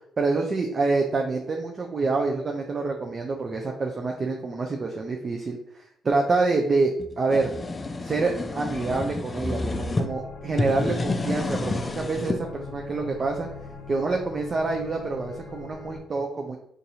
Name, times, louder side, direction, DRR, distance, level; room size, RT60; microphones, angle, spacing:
voice 1, 0.2-6.9 7.2-7.5 8.0-13.5 13.9-16.6, right 3 dB, 40° right, 1 dB, 0.4 m, -27 dB
sound 1, 7.0-10.1 10.5-12.4, left 2 dB, 30° left, 0.3 m, -29 dB
sound 2, 9.5-16.0, left 4 dB, 55° left, 0.8 m, -42 dB
3.9 x 2.5 x 2.8 m, 0.71 s
cardioid pair, 90°, 0 cm